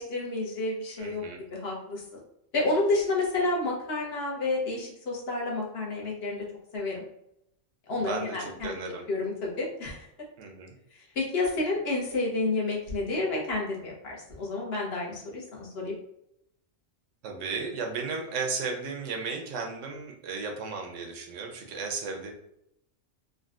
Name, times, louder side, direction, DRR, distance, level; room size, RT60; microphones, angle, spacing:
voice 1, 0.0-1.2 1.5-2.2 2.5-6.4 6.7-7.0 7.9-10.1 10.9-15.9, left 2 dB, 60° left, -2 dB, 1.0 m, -30 dB
voice 2, 1.0-1.4 8.0-9.0 10.4-10.7 17.2-22.3, right 4 dB, 90° right, 2 dB, 1.0 m, -34 dB
3.7 x 2.1 x 2.4 m, 0.77 s
omnidirectional pair, 1.2 m